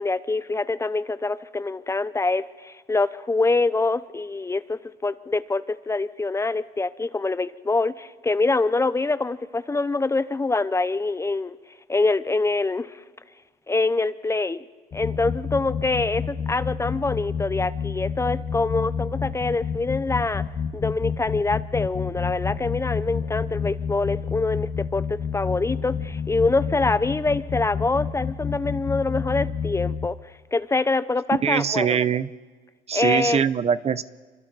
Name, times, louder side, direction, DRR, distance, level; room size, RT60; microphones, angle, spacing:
voice 1, 0.0-11.6 11.9-13.0 13.7-14.7 14.9-20.4 20.7-25.1 25.3-30.2 30.5-32.0 32.9-33.5, left 3 dB, 15° left, 14 dB, 0.7 m, -25 dB
sound 1, 14.9-30.1, left 6 dB, 35° left, 1.0 m, -29 dB
voice 2, 31.4-32.3 32.9-34.0, right 8 dB, 40° right, 16 dB, 0.6 m, -22 dB
26.5 x 24.5 x 4.1 m, 1.5 s
cardioid pair, 110°, 17 cm